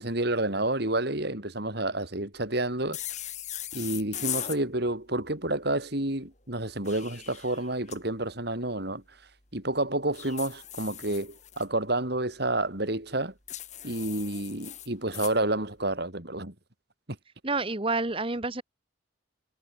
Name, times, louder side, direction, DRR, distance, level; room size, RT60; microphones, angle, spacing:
voice 1, 0.0-3.0 3.7-9.0 9.5-13.3 13.8-16.5, right 1 dB, 55° right, 3.5 m, -29 dB
sound 1, 2.9-4.6 6.6-8.0 10.1-11.6 13.5-15.4, left 11 dB, 35° left, 5.8 m, -38 dB
voice 2, 17.4-18.6, right 3 dB, 25° right, 1.2 m, -28 dB
head